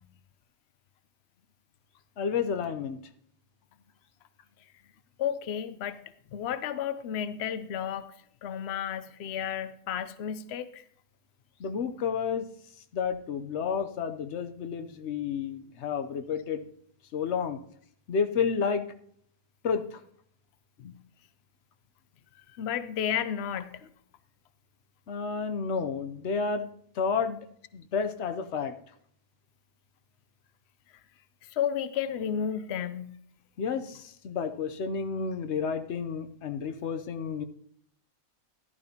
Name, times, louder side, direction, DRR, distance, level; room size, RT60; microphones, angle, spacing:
voice 1, 2.2-3.0 11.6-12.5 12.9-16.6 17.1-17.6 18.1-18.8 19.6-20.0 25.1-26.7 26.9-27.4 27.7-28.7 33.6-37.4, left 6 dB, 55° left, 9 dB, 0.8 m, -30 dB
voice 2, 5.2-6.0 6.3-8.1 8.4-10.8 20.8-21.0 22.5-23.9 31.4-33.2, left 9 dB, 85° left, 13 dB, 0.5 m, -32 dB
14.0 x 12.0 x 2.8 m, 0.65 s
omnidirectional pair, 1.8 m